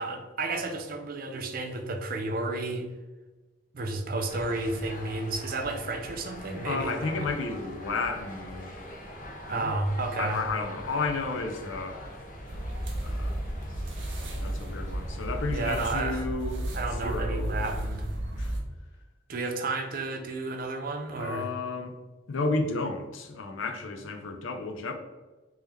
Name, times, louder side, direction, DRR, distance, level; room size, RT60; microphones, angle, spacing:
voice 1, 0.0-2.9 3.7-7.3 9.5-10.4 15.5-16.3 16.7-18.1 19.3-21.5, right 2 dB, 45° right, 4 dB, 0.5 m, -32 dB
sound 1, 4.3-15.7, equal, 40° left, 0.7 m, -43 dB
voice 2, 6.6-8.8 9.5-9.7 10.2-12.0 13.0-13.4 14.3-16.7 17.0-17.7 18.4-18.5 21.2-21.9 22.3-24.9, left 3 dB, 75° left, 5 dB, 0.5 m, -32 dB
sound 2, 12.5-18.6, right 1 dB, 65° right, 0.9 m, -33 dB
3.6 x 2.9 x 3.3 m, 1.2 s
head